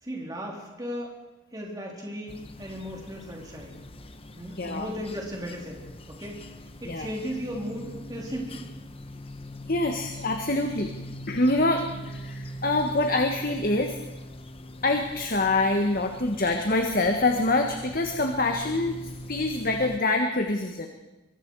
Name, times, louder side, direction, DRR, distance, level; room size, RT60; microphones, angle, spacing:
voice 1, 0.0-1.2 1.5-3.8 4.4-6.5 6.8-8.7, equal, 20° right, -2 dB, 3.8 m, -36 dB
sound 1, 2.3-20.0, left 1 dB, 25° left, 1.1 m, -42 dB
voice 2, 4.6-4.9 6.9-7.1 9.7-10.9 11.3-14.0 14.8-20.9, left 2 dB, 45° left, 4 dB, 1.5 m, -25 dB
24.5 x 23.0 x 4.8 m, 1.1 s
head